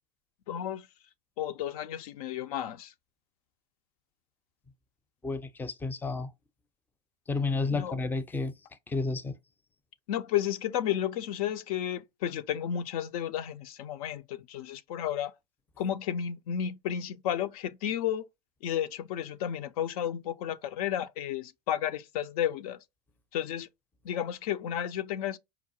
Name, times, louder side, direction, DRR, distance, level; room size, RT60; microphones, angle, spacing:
voice 1, 0.5-0.9 1.4-2.9 7.7-8.0 10.1-15.3 15.8-18.3 18.6-22.8 23.3-23.7 24.0-25.4, left 10 dB, 60° left, 0.5 m, -32 dB
voice 2, 5.2-6.3 7.3-8.5 8.9-9.4, left 3 dB, 10° left, 0.5 m, -31 dB
4.7 x 2.1 x 2.8 m
hypercardioid pair, 95°, 21 cm